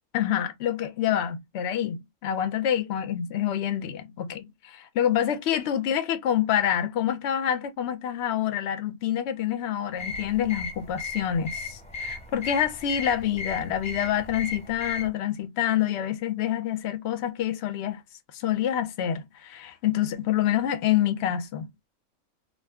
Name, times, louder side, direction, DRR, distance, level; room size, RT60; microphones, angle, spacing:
voice 1, 0.1-18.0 18.3-21.7, left 10 dB, 65° left, 0.8 m, -27 dB
sound 1, 10.0-15.1, left 4 dB, 5° left, 1.0 m, -36 dB
2.6 x 2.3 x 3.4 m
omnidirectional pair, 1.4 m